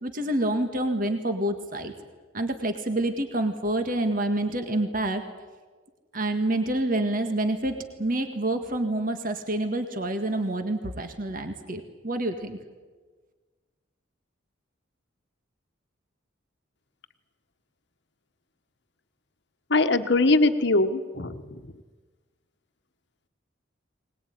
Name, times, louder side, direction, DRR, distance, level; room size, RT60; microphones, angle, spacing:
voice 1, 0.0-1.9 2.3-5.2 6.1-12.6, right 1 dB, 40° right, 7 dB, 1.7 m, -27 dB
voice 2, 19.7-21.6, left 2 dB, 55° left, 9 dB, 1.3 m, -22 dB
22.0 x 20.0 x 9.4 m, 1.4 s
head